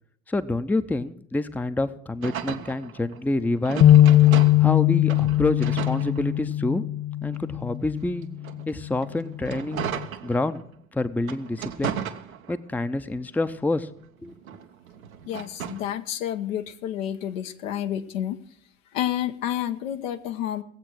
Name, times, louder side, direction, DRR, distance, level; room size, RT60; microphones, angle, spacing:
voice 1, 0.3-3.8 4.6-6.8 7.2-8.3 8.7-9.9 10.2-10.6 10.9-12.0 12.5-13.9 14.2-14.3, left 2 dB, 5° left, 12 dB, 0.6 m, -27 dB
sound 1, 2.2-4.8 5.1-6.7 7.3-10.7 11.2-12.8 13.2-15.9, right 8 dB, 80° right, 1.0 m, -36 dB
sound 2, 3.8-8.1 8.6-8.8 9.6-10.1, left 13 dB, 55° left, 1.9 m, -20 dB
voice 2, 15.3-18.4 18.9-20.6, left 11 dB, 70° left, 8 dB, 1.0 m, -29 dB
17.5 x 8.0 x 6.2 m, 0.63 s
figure-of-eight pair, 60°, 41 cm